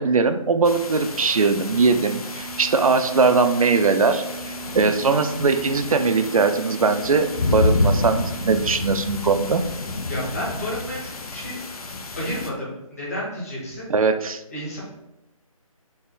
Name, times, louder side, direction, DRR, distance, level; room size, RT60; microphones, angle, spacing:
voice 1, 0.0-9.6 13.9-14.4, right 4 dB, 70° right, 9 dB, 0.5 m, -20 dB
sound 1, 0.6-12.5, left 2 dB, 80° left, 0.7 m, -29 dB
sound 2, 2.2-8.4, right 4 dB, 45° left, 1.4 m, -38 dB
voice 2, 10.1-11.6 12.1-13.9 14.5-14.8, left 1 dB, 25° left, -6 dB, 1.2 m, -31 dB
4.2 x 2.9 x 3.7 m, 0.91 s
hypercardioid pair, 180°, 18 cm